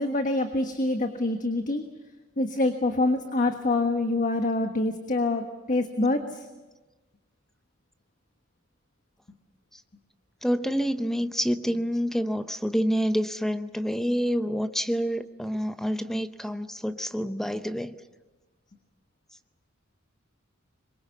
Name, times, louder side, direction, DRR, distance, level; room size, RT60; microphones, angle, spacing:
voice 1, 0.0-1.8 2.4-6.5, left 2 dB, 40° left, 6 dB, 1.4 m, -26 dB
voice 2, 10.4-18.0, equal, ahead, 10 dB, 0.8 m, -27 dB
25.5 x 23.0 x 7.2 m, 1.2 s
head